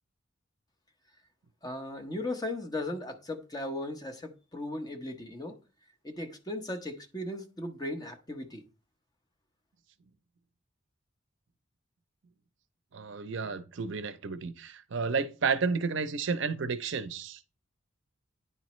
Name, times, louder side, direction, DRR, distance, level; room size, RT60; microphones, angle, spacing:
voice 1, 1.6-5.5 6.0-8.6, left 1 dB, 20° left, 0.8 m, -37 dB
voice 2, 12.9-17.6, right 5 dB, 65° right, 0.5 m, -32 dB
9.6 x 4.0 x 3.1 m
head